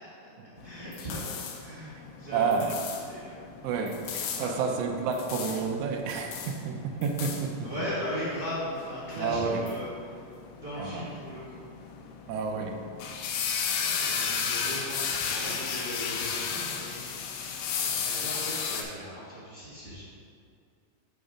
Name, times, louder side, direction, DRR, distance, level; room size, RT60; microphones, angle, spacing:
voice 1, 0.0-2.6 3.1-3.4 4.3-4.7 7.6-11.6 13.8-20.0, equal, 35° right, -11 dB, 0.8 m, -38 dB
sound 1, 0.6-18.8, left 6 dB, 85° left, 2.4 m, -35 dB
voice 2, 2.3-2.7 3.6-7.5 9.2-9.6 10.8-11.0 12.3-12.8, right 5 dB, 80° right, 2 dB, 1.8 m, -30 dB
6.9 x 5.4 x 5.0 m, 2.3 s
omnidirectional pair, 4.1 m